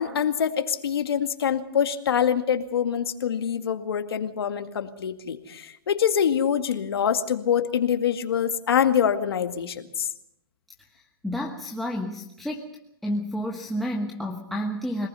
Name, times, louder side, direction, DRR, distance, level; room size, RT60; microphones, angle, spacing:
voice 1, 0.0-10.1, left 8 dB, 75° left, 7 dB, 2.1 m, -25 dB
voice 2, 10.9-12.7 13.0-15.1, equal, ahead, -1 dB, 1.2 m, -30 dB
26.0 x 19.5 x 5.7 m, 0.80 s
hypercardioid pair, 150°, 13 cm